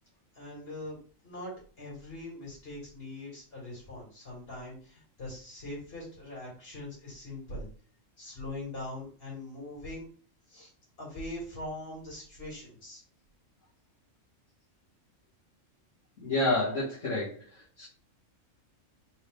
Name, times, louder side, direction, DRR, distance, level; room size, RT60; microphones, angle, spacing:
voice 1, 0.3-1.0 1.2-7.7 8.2-10.1 10.5-10.7 11.0-13.0, left 1 dB, 45° left, -5 dB, 2.7 m, -42 dB
voice 2, 16.2-17.4 17.8-17.9, left 2 dB, 70° left, -9 dB, 1.7 m, -28 dB
4.4 x 3.2 x 3.5 m, 0.43 s
omnidirectional pair, 1.3 m